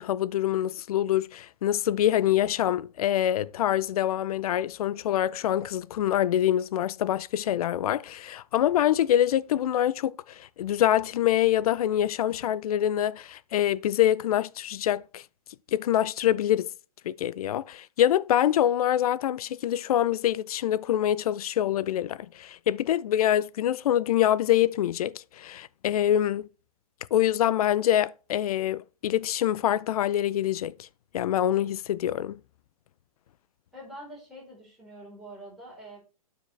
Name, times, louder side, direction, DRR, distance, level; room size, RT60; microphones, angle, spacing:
voice 1, 0.0-15.2 15.7-16.7 17.0-26.5 27.1-30.9 31.1-32.4, left 11 dB, 75° left, 0.4 m, -25 dB
voice 2, 33.7-36.0, right 1 dB, ahead, 4.4 m, -45 dB
8.9 x 5.0 x 3.2 m
hypercardioid pair, 150°, 19 cm